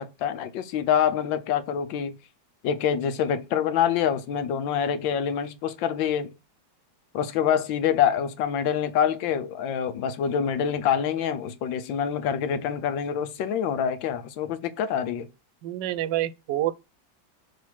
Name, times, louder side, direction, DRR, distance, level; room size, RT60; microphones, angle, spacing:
voice 1, 0.0-2.1 2.6-6.3 7.1-15.3, left 8 dB, 75° left, 1.5 m, -26 dB
voice 2, 15.6-16.8, right 14 dB, 75° right, 1.2 m, -27 dB
6.7 x 3.1 x 5.9 m
omnidirectional pair, 2.1 m